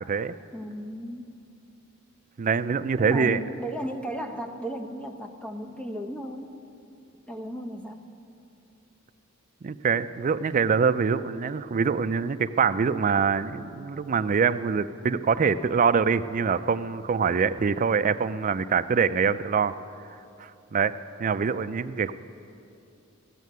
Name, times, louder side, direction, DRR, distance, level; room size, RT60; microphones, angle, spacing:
voice 1, 0.0-0.3 2.4-3.4 9.6-19.7 20.4-20.9 21.2-22.1, right 6 dB, 40° right, 12 dB, 0.4 m, -24 dB
voice 2, 0.5-1.3 2.9-6.6 7.3-8.1, equal, 5° left, 3 dB, 0.8 m, -35 dB
14.0 x 7.4 x 9.3 m, 2.7 s
head